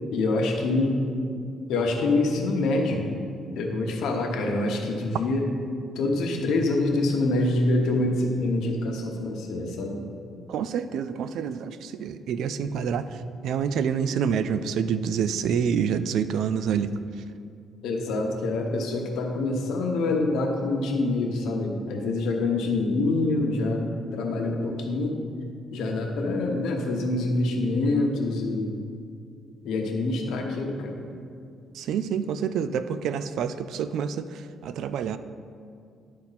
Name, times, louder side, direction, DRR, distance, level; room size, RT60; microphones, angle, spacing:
voice 1, 0.1-1.0 1.7-3.1 3.6-5.5 6.0-10.0 13.1-13.2 17.8-23.8 24.1-25.2 25.7-28.8 29.6-30.9, left 2 dB, 85° left, 1 dB, 1.1 m, -25 dB
voice 2, 10.5-13.0 13.4-16.9 31.8-34.2 34.6-35.2, right 7 dB, 75° right, 12 dB, 0.3 m, -27 dB
11.5 x 4.3 x 4.1 m, 2.4 s
cardioid pair, 130°, 0 cm